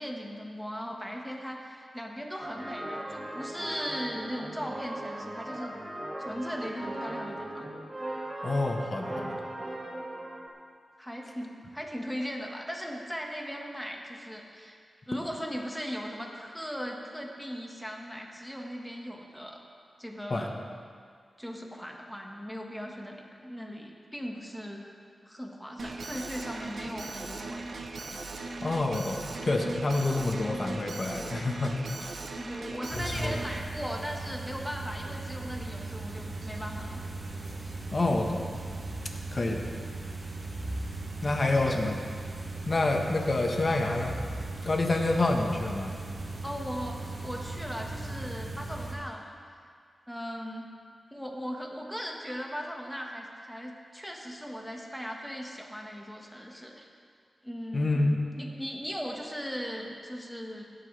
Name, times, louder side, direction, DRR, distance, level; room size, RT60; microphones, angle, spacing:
voice 1, 0.0-5.7 6.2-7.7 11.0-14.8 15.1-19.6 20.0-20.6 21.4-24.8 25.2-27.7 32.3-37.0 41.3-41.8 46.4-49.4 50.1-50.7 51.1-56.9 57.4-60.6, equal, ahead, 0 dB, 1.7 m, -38 dB
sound 1, 2.4-10.5, right 1 dB, 25° right, 1.6 m, -38 dB
voice 2, 8.4-9.4 20.3-20.5 28.6-32.1 32.9-33.3 37.9-38.6 39.3-39.6 41.2-42.0 42.7-44.2 44.6-45.9 57.7-58.2, left 2 dB, 45° left, 2 dB, 1.4 m, -28 dB
Alarm, 25.8-33.6, right 3 dB, 70° right, 1.0 m, -39 dB
sound 2, 32.9-48.9, right 2 dB, 50° right, 2.6 m, -38 dB
16.5 x 12.0 x 3.5 m, 2.1 s
cardioid pair, 70°, 0 cm